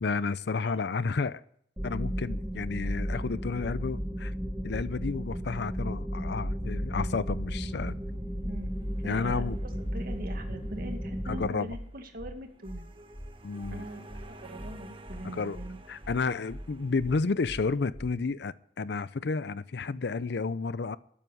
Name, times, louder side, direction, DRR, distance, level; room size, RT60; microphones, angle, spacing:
voice 1, 0.0-1.4 1.8-4.3 4.6-8.0 9.0-9.6 11.3-11.7 13.4-13.9 15.2-15.6 15.9-21.0, left 4 dB, 65° left, 0.5 m, -31 dB
sound 1, 1.8-11.5, equal, 10° right, 1.3 m, -34 dB
sound 2, 3.0-3.2 3.5-3.7 4.0-4.2 4.5-4.6 5.0-5.1 5.4-5.6 5.9-6.1 6.4-6.6 6.9-7.0 7.4-7.5 7.8-8.0 8.3-8.5 8.8-9.0 9.3-9.4 9.8-9.9 10.2-10.4 10.7-10.9 11.2-11.4 11.7-11.8 12.2-12.3 12.6-12.8 13.1-13.3 13.6-13.8 14.1-14.2 14.6-14.7 15.0-15.2 15.5-15.7 16.0-16.2 16.5-16.6 17.0-17.1 17.4-17.6 17.9-18.1, equal, 15° left, 6.2 m, -42 dB
sound 3, 8.2-17.2, right 1 dB, 30° right, 1.3 m, -53 dB
voice 2, 9.0-12.9 13.7-15.8, right 1 dB, 55° right, 2.1 m, -42 dB
13.0 x 9.3 x 10.0 m
head